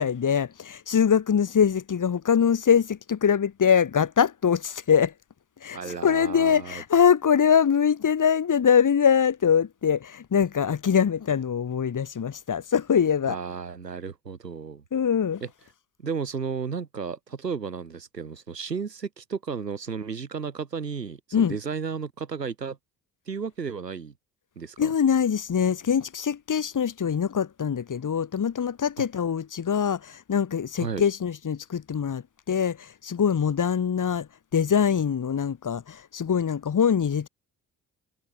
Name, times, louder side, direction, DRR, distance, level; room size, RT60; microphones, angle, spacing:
voice 1, 0.0-5.1 5.6-13.4 14.9-15.4 21.3-21.6 24.8-32.2 32.5-34.3 34.5-37.3, left 7 dB, 40° left, 2.8 m, -23 dB
voice 2, 5.7-6.8 13.3-14.8 15.4-15.5 16.0-22.8 23.3-24.1 24.6-24.9 29.0-29.1 30.8-31.0, right 5 dB, 90° right, 3.6 m, -33 dB
figure-of-eight pair, 40°, 48 cm